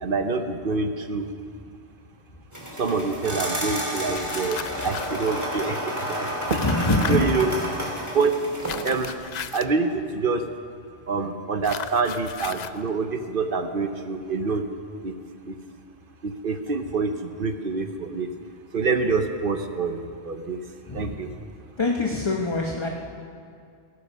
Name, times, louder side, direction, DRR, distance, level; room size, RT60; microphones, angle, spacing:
voice 1, 0.0-1.2 2.8-6.7 7.1-7.5 8.1-8.3 8.8-9.1 9.5-10.4 11.1-14.6 15.0-15.1 15.5-15.6 16.2-17.1 17.4-18.3 18.7-20.6 20.9-21.3, right 4 dB, 50° right, 7 dB, 1.0 m, -26 dB
sound 1, 2.5-9.1, equal, 15° right, 2.7 m, -31 dB
sound 2, 4.1-5.2 6.5-7.2 8.6-9.7 11.6-12.8, left 8 dB, 55° left, 0.5 m, -35 dB
voice 2, 6.6-7.3 20.9-21.1 21.8-22.9, left 2 dB, 25° left, 0 dB, 1.0 m, -24 dB
17.0 x 14.5 x 5.4 m, 2.3 s
omnidirectional pair, 1.2 m